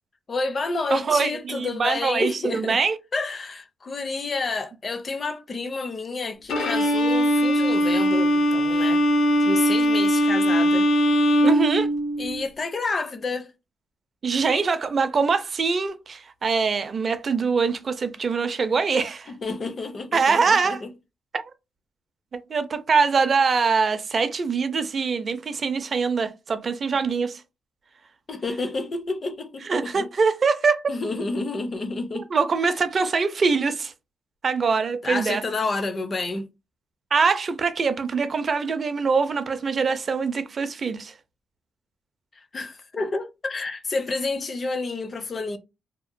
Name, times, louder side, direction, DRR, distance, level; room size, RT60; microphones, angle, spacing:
voice 1, 0.3-2.8 3.1-9.0 9.4-10.9 12.2-13.5 19.4-20.9 28.3-30.1 30.9-32.3 35.0-36.5 42.5-45.6, left 3 dB, 35° left, 0.4 m, -29 dB
voice 2, 0.9-3.0 11.4-11.9 14.2-19.3 20.1-20.8 21.3-21.4 22.3-27.4 29.6-30.8 32.3-33.9 34.4-35.4 37.1-41.1, right 5 dB, 40° right, 0.4 m, -23 dB
Bowed string instrument, 6.5-12.4, equal, 90° left, 0.6 m, -20 dB
2.8 x 2.1 x 2.5 m
cardioid pair, 140°, 0 cm